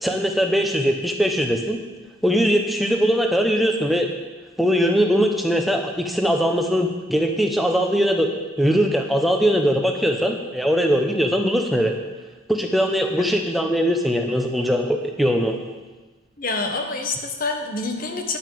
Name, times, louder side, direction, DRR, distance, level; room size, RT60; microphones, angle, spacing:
voice 1, 0.0-1.8 2.2-4.1 4.6-8.3 8.6-11.9 12.5-15.6, equal, ahead, 2 dB, 0.8 m, -21 dB
voice 2, 16.4-18.4, left 3 dB, 40° left, 4 dB, 1.1 m, -27 dB
10.5 x 5.7 x 7.6 m, 1.3 s
head